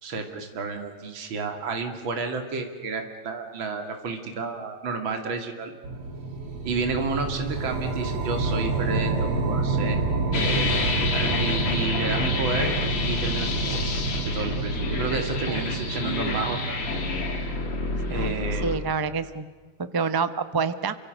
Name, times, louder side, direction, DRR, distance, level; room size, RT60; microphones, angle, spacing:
voice 1, 0.0-5.7 6.6-10.0 11.1-12.7 13.0-13.8 14.2-16.8 18.1-18.7, right 4 dB, 60° right, 5 dB, 3.1 m, -31 dB
sound 1, 5.8-18.4, right 3 dB, 85° right, 3.9 m, -28 dB
sound 2, 10.3-18.8, left 3 dB, 80° left, 3.5 m, -29 dB
voice 2, 18.1-19.5 19.8-20.9, right 5 dB, 25° right, 12 dB, 0.4 m, -28 dB
29.0 x 25.0 x 6.5 m, 1.5 s
omnidirectional pair, 2.4 m